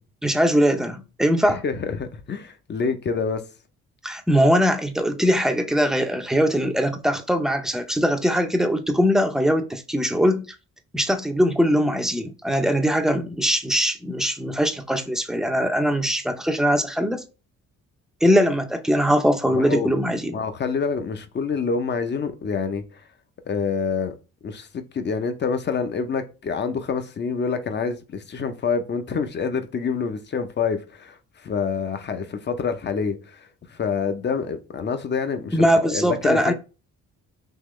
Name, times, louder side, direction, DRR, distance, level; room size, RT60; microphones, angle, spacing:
voice 1, 0.2-1.6 4.0-10.4 10.9-17.2 18.2-20.4 35.5-36.5, equal, ahead, 0.6 m, -21 dB
voice 2, 1.5-3.4 19.5-19.9 20.3-23.0 23.5-24.1 24.4-36.5, left 5 dB, 35° left, 0.6 m, -27 dB
3.8 x 2.9 x 3.1 m
cardioid pair, 90°, 30 cm